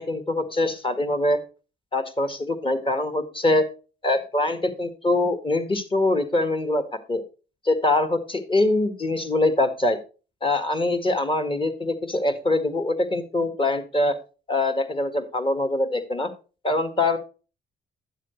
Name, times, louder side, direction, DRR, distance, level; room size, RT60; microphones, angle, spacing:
voice 1, 0.0-1.4 1.9-3.6 4.0-7.2 7.6-10.0 10.4-14.2 14.5-16.3 16.6-17.2, left 2 dB, 25° left, 9 dB, 1.7 m, -23 dB
10.5 x 7.3 x 3.2 m, 0.33 s
cardioid pair, 90°, 20 cm